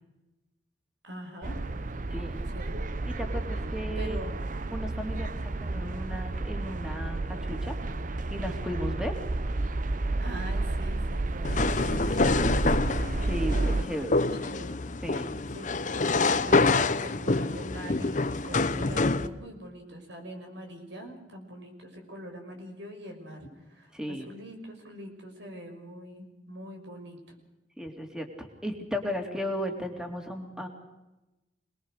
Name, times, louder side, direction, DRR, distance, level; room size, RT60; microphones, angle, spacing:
voice 1, 1.0-1.5 2.4-2.8 4.0-4.4 10.2-13.0 13.7-14.8 15.5-27.2, equal, 90° right, 4 dB, 6.0 m, -43 dB
sound 1, 1.4-13.8, right 2 dB, 45° right, 0.8 m, -31 dB
voice 2, 2.1-2.4 3.1-4.2 4.7-7.8 8.3-9.2 13.3-14.1 15.0-15.3 23.9-24.3 27.8-30.7, equal, 5° right, 3 dB, 2.7 m, -35 dB
sound 2, 11.4-19.3, left 3 dB, 45° left, 0.9 m, -26 dB
27.0 x 20.5 x 6.5 m, 1.0 s
head